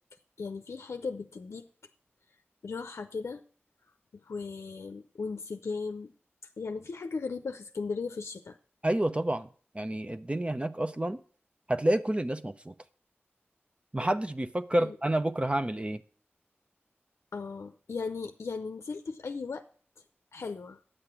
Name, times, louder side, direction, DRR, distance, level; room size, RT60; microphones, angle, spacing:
voice 1, 0.4-1.7 2.6-3.4 4.2-6.1 6.6-8.6 14.8-15.0 17.3-19.6 20.3-20.8, left 4 dB, 85° left, 7 dB, 0.5 m, -37 dB
voice 2, 8.8-9.5 9.7-11.2 11.7-12.7 13.9-16.0, right 1 dB, 25° right, 10 dB, 0.7 m, -29 dB
10.0 x 6.8 x 6.0 m, 0.43 s
cardioid pair, 40°, 5 cm